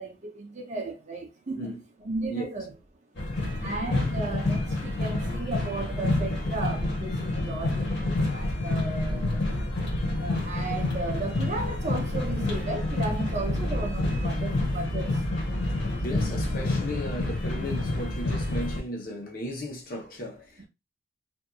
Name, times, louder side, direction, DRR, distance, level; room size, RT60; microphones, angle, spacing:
voice 1, 0.0-2.8 3.6-9.4 10.2-15.3, right 2 dB, 40° right, 0.7 m, -35 dB
sound 1, 3.2-18.8, left 2 dB, 65° left, 1.3 m, -28 dB
voice 2, 15.9-20.7, equal, 50° left, 0.9 m, -36 dB
2.7 x 2.5 x 2.3 m
head